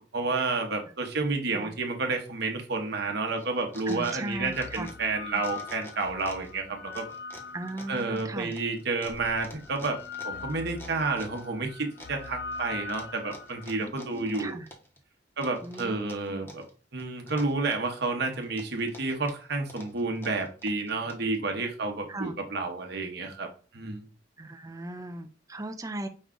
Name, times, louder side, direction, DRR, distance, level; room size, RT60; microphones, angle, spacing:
voice 1, 0.1-7.1 7.9-10.0 10.2-14.6 15.4-16.6 16.9-23.5 23.7-24.1, right 3 dB, 60° right, 3 dB, 1.0 m, -30 dB
sound 1, 3.0-3.1 4.1-8.3 9.1-13.8, left 5 dB, 65° left, 0.5 m, -42 dB
sound 2, 3.4-5.1 5.4-6.5 6.9-11.5 12.0-12.6 12.9-15.0 15.4-16.7 17.0-18.0 18.4-21.4, left 1 dB, 15° left, 0.8 m, -48 dB
voice 2, 3.9-4.9 5.3-5.4 7.5-8.5 13.8-14.7 15.6-16.5 21.2-21.3 22.1-22.3 24.4-26.1, right 1 dB, 20° right, 7 dB, 0.4 m, -38 dB
5.3 x 2.3 x 3.7 m, 0.37 s
head